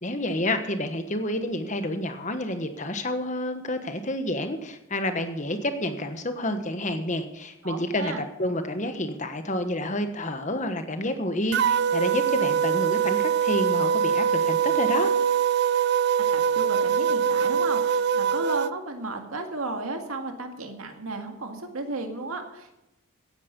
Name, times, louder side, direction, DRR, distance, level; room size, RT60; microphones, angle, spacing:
voice 1, 0.0-15.1, left 1 dB, 35° left, 8 dB, 1.3 m, -29 dB
voice 2, 7.6-8.2 16.2-22.8, right 2 dB, 75° right, 5 dB, 2.0 m, -34 dB
sound 1, 11.5-18.7, right 7 dB, 50° right, 0.4 m, -23 dB
16.0 x 9.8 x 5.4 m, 0.92 s
head